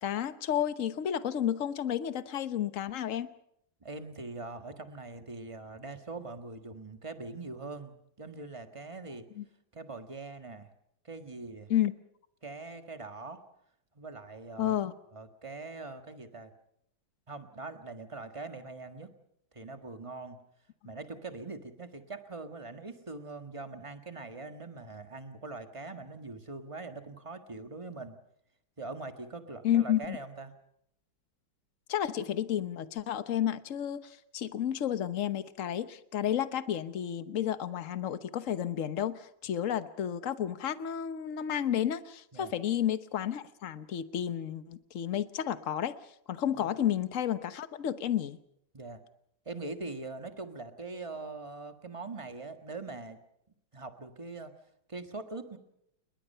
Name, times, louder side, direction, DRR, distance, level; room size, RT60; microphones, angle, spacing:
voice 1, 0.0-3.3 9.4-9.5 11.7-11.9 14.6-14.9 29.6-30.2 31.9-46.0 46.3-48.4, left 10 dB, 50° left, 13 dB, 1.2 m, -31 dB
voice 2, 3.8-9.2 9.7-10.7 11.0-11.7 12.4-13.4 13.9-14.7 15.1-16.5 17.3-19.1 19.5-20.4 20.8-28.2 28.8-30.5 42.3-42.5 46.6-46.7 48.7-49.0 49.4-53.2 53.7-54.5 54.9-55.6, right 3 dB, 15° right, 7 dB, 1.6 m, -42 dB
29.0 x 21.5 x 5.7 m, 0.75 s
omnidirectional pair, 2.1 m